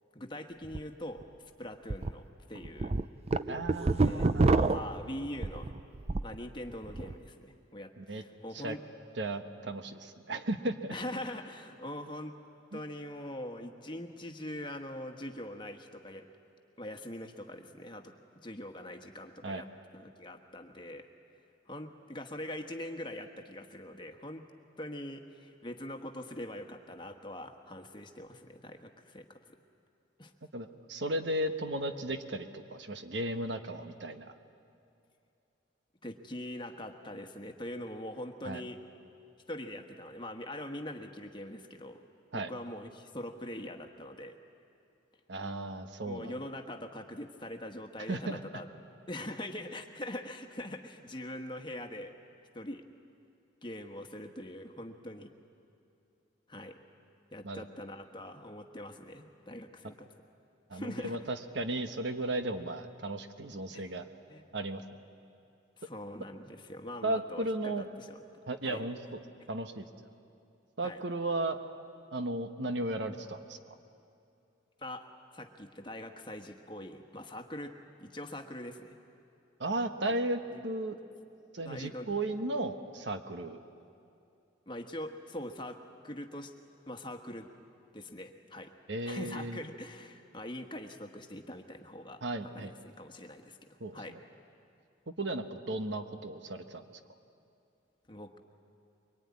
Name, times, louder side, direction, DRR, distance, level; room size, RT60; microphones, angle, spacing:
voice 1, 0.1-1.2 1.6-3.0 4.0-5.7 6.2-8.8 10.9-12.3 12.7-16.3 16.8-18.1 18.4-19.7 19.9-21.1 21.7-24.4 24.8-29.4 30.2-30.3 36.0-38.8 39.5-42.0 42.3-44.4 46.0-48.7 49.1-52.1 52.5-52.8 53.6-55.3 56.5-56.8 57.3-60.1 60.7-61.3 63.7-63.9 64.3-64.6 65.8-68.2 68.6-68.9 70.8-71.0 74.8-77.7 78.0-79.0 80.5-80.6 81.6-82.1 84.7-86.5 86.9-87.5 87.9-88.7 89.0-92.2 92.5-94.2 98.1-98.4, left 1 dB, 25° left, 5 dB, 1.4 m, -43 dB
sound 1, 0.6-0.8 1.2-1.3 1.9-2.1 2.6-6.4 6.7-7.2, right 3 dB, 30° right, 0.5 m, -28 dB
voice 2, 3.5-4.5 8.0-8.2 8.5-8.8 9.2-10.9 12.7-12.8 19.4-19.6 30.5-34.3 38.4-38.6 42.3-42.5 45.3-46.3 48.1-48.4 57.4-57.6 60.7-64.1 64.5-65.0 67.0-67.9 68.5-69.2 69.5-69.9 70.8-71.6 72.1-73.7 79.6-81.0 81.5-83.6 88.9-89.6 92.2-92.7 93.8-94.2 95.2-97.0, right 1 dB, 65° right, 8 dB, 1.3 m, -35 dB
23.5 x 23.0 x 9.7 m, 2.6 s
head